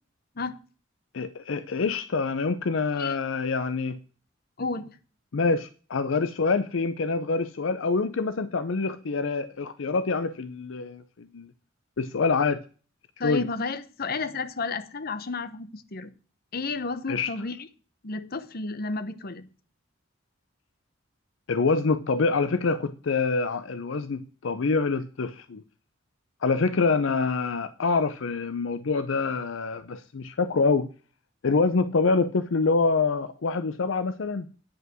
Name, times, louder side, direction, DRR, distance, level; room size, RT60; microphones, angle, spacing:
voice 1, 1.1-4.0 5.3-11.5 12.0-12.6 13.2-13.5 17.1-17.3 21.5-25.6 26.4-30.9 31.4-34.5, left 4 dB, 70° left, 0.6 m, -26 dB
voice 2, 4.6-4.9 13.2-16.1 16.5-17.7 18.0-19.5, left 3 dB, 50° left, 0.9 m, -32 dB
10.0 x 5.6 x 7.4 m
head